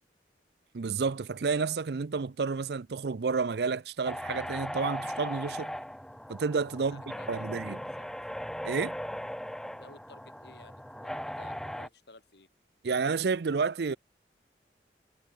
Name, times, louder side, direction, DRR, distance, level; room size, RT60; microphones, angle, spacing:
voice 1, 0.7-5.7 6.3-7.0 7.3-7.8 8.6-9.0 12.8-14.0, right 5 dB, 65° right, 0.5 m, -30 dB
sound 1, 4.1-11.9, equal, 5° left, 0.7 m, -38 dB
voice 2, 6.7-8.1 9.8-12.5, left 2 dB, 70° left, 3.5 m, -55 dB
head